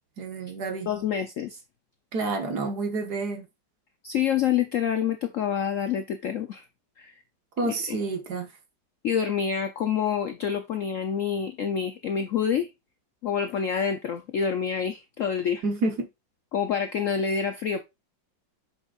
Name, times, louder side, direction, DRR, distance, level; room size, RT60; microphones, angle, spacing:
voice 1, 0.2-0.9 2.1-3.5 7.6-8.5 15.6-16.1, right 3 dB, 60° right, 1.9 m, -29 dB
voice 2, 0.9-1.6 4.0-6.7 7.0-7.1 7.6-8.0 9.0-12.7 13.2-15.6 16.5-17.8, left 7 dB, 70° left, 0.7 m, -27 dB
8.1 x 6.2 x 2.5 m
omnidirectional pair, 2.0 m